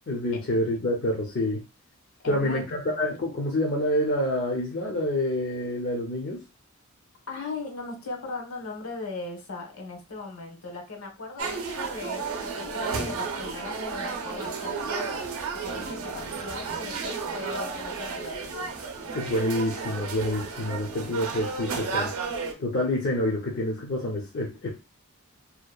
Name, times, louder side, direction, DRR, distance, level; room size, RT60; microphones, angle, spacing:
voice 1, 0.1-1.6 2.3-6.4 19.1-22.1 22.6-24.7, left 1 dB, 50° left, -2 dB, 0.5 m, -27 dB
voice 2, 2.2-3.0 7.3-15.1 15.6-18.6, left 3 dB, 70° left, 2 dB, 0.9 m, -38 dB
sound 1, 11.4-22.5, right 4 dB, 70° right, 0.5 m, -32 dB
2.8 x 2.2 x 2.2 m, 0.27 s
head